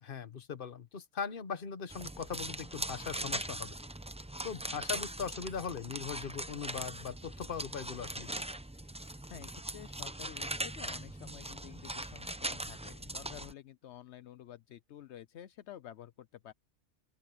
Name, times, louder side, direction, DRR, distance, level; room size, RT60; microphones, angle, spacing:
voice 1, 0.0-3.7 4.4-8.3, left 6 dB, 50° left, 1.2 m, -40 dB
sound 1, 1.9-13.5, right 1 dB, 10° right, 0.5 m, -40 dB
voice 2, 9.0-16.5, left 11 dB, 80° left, 0.9 m, -51 dB
open air
omnidirectional pair, 1.2 m